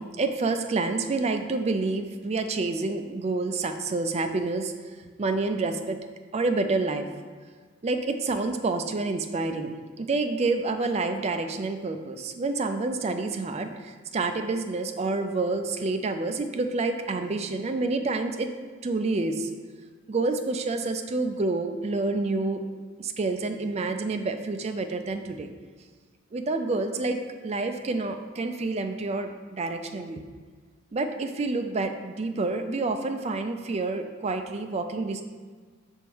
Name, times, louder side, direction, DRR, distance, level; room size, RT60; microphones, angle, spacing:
voice 1, 0.0-4.7 5.2-6.0 6.3-7.1 7.8-18.5 18.8-19.5 20.1-22.6 23.0-25.5 26.3-30.2 30.9-35.2, right 3 dB, 30° right, 6 dB, 0.4 m, -28 dB
6.2 x 3.5 x 4.5 m, 1.6 s
head